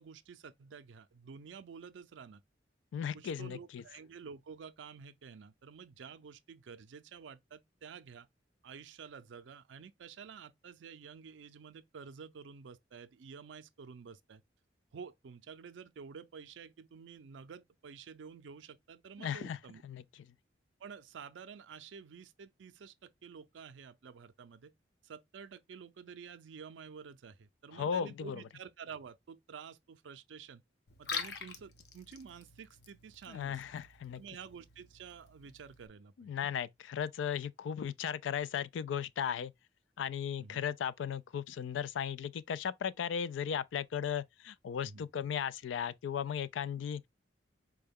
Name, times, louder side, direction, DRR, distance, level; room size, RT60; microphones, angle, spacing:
voice 1, 0.0-2.4 3.1-8.3 8.6-14.4 14.9-19.8 20.8-24.7 25.0-30.6 31.0-33.6 34.1-36.3 40.4-40.6 44.8-45.0, right 6 dB, 90° right, 0.4 m, -50 dB
voice 2, 2.9-3.8 19.2-19.6 19.8-20.0 27.7-28.4 33.3-34.2 36.2-39.5 40.0-47.1, left 8 dB, 90° left, 0.3 m, -36 dB
Liquid, 30.9-35.9, left 5 dB, 60° left, 0.7 m, -46 dB
4.6 x 2.2 x 3.4 m
head